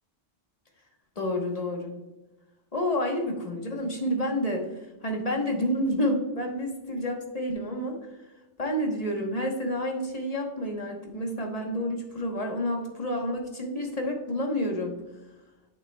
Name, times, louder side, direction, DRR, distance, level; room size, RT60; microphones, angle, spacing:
voice 1, 1.2-1.9 2.7-8.0 8.6-14.9, equal, 35° left, 2 dB, 1.2 m, -29 dB
8.1 x 6.6 x 2.2 m, 1.0 s
omnidirectional pair, 1.1 m